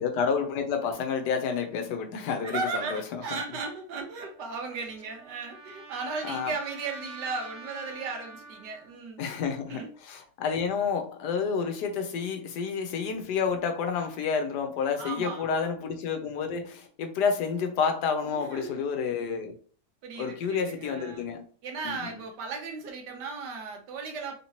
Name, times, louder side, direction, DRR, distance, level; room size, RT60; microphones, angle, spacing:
voice 1, 0.0-3.4 6.2-6.5 9.2-19.6 20.2-21.4 21.8-22.2, left 6 dB, 75° left, 1.2 m, -30 dB
voice 2, 2.4-9.2 9.7-9.9 15.0-15.7 18.2-18.8 20.0-21.3 21.6-24.3, right 4 dB, 80° right, 1.5 m, -36 dB
Trumpet, 4.2-9.0, right 3 dB, 55° right, 1.2 m, -46 dB
3.7 x 2.8 x 2.8 m
omnidirectional pair, 1.8 m